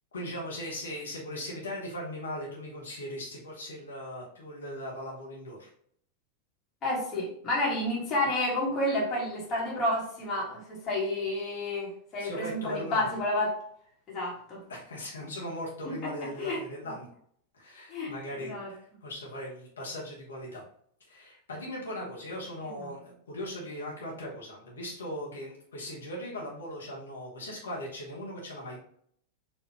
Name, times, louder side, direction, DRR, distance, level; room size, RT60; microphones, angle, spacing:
voice 1, 0.1-5.7 12.2-13.1 14.7-17.1 17.6-20.6 21.1-28.8, equal, 70° left, -4 dB, 1.2 m, -39 dB
voice 2, 6.8-13.6 14.1-14.6 16.0-16.6 17.9-18.7 22.8-22.9, left 1 dB, 30° left, -3 dB, 1.6 m, -30 dB
4.4 x 2.7 x 2.9 m, 0.64 s
figure-of-eight pair, 90°, 0 cm